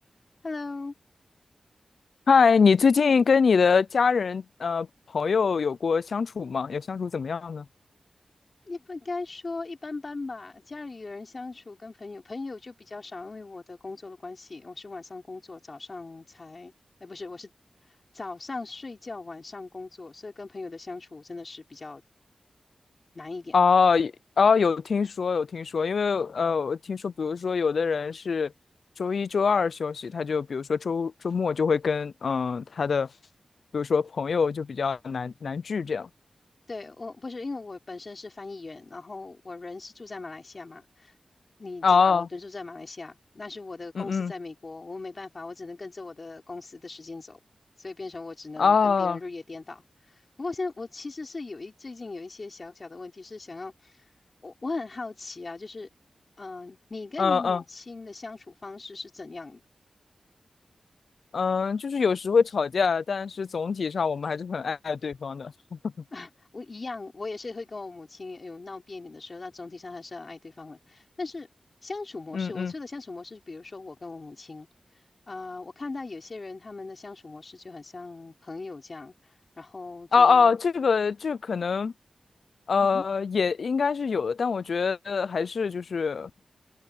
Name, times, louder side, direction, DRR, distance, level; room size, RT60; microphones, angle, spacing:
voice 1, 0.4-0.9 3.0-3.1 8.7-16.7 17.0-17.5 18.1-22.0 23.1-23.6 36.7-41.1 41.6-47.4 47.8-54.0 54.4-55.9 56.4-59.6 66.1-71.5 71.8-74.7 75.3-80.6 82.8-83.0, left 3 dB, 35° left, 3.2 m, -39 dB
voice 2, 2.3-4.9 5.1-7.6 23.5-28.5 29.0-33.1 33.7-36.1 41.8-42.3 44.0-44.3 48.6-49.2 57.2-57.6 61.3-65.9 72.3-72.7 80.1-81.9 82.7-86.3, left 5 dB, 70° left, 0.4 m, -24 dB
wide cardioid pair, 145°, 0 cm